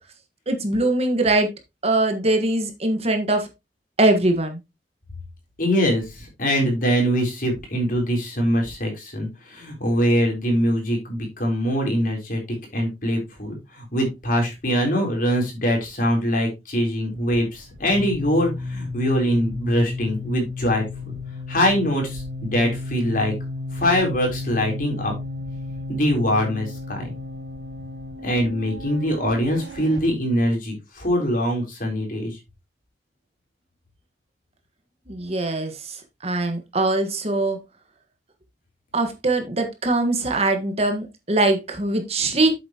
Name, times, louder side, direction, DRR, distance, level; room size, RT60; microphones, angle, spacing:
voice 1, 0.5-1.5 1.8-3.5 4.0-4.6 35.1-36.0 36.2-37.6 38.9-42.5, right 2 dB, 35° right, 5 dB, 1.5 m, -22 dB
voice 2, 5.6-12.4 12.7-20.8 21.5-23.3 23.7-25.1 25.9-27.1 28.2-32.4, equal, 50° left, 1 dB, 3.9 m, -23 dB
sound 1, 17.2-30.0, left 2 dB, 85° right, 4.9 m, -33 dB
8.3 x 7.7 x 3.0 m, 0.23 s
head